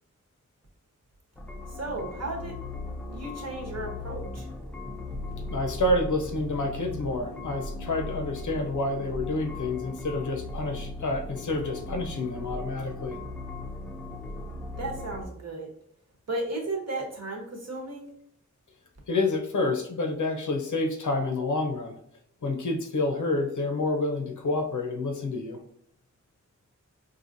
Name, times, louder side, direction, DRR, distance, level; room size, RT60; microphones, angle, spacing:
sound 1, 1.4-15.3, left 2 dB, 5° left, 0.5 m, -38 dB
voice 1, 1.8-2.6 3.1-4.5 14.8-15.7 16.3-18.1, right 2 dB, 55° right, 0 dB, 1.1 m, -34 dB
voice 2, 5.5-13.2 19.1-22.0 22.4-25.6, left 2 dB, 75° left, 4 dB, 0.6 m, -28 dB
4.1 x 2.6 x 2.6 m, 0.70 s
wide cardioid pair, 55°, 31 cm